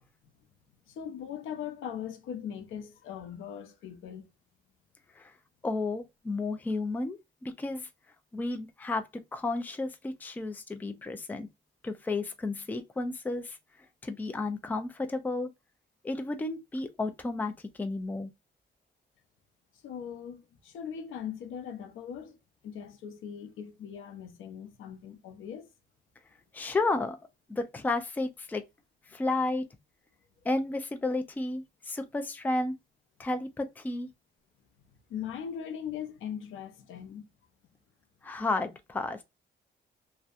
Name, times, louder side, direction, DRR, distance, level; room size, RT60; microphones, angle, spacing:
voice 1, 0.9-4.3 19.8-22.4 22.6-25.7 35.1-37.3, left 8 dB, 85° left, 0.6 m, -40 dB
voice 2, 5.6-7.9 8.3-11.5 11.8-13.6 14.0-15.5 16.0-18.3 26.5-27.2 27.5-28.6 29.1-29.7 30.4-32.7 33.2-34.1 38.2-39.2, left 2 dB, 10° left, 0.3 m, -32 dB
2.7 x 2.1 x 2.3 m
cardioid pair, 120°, 20 cm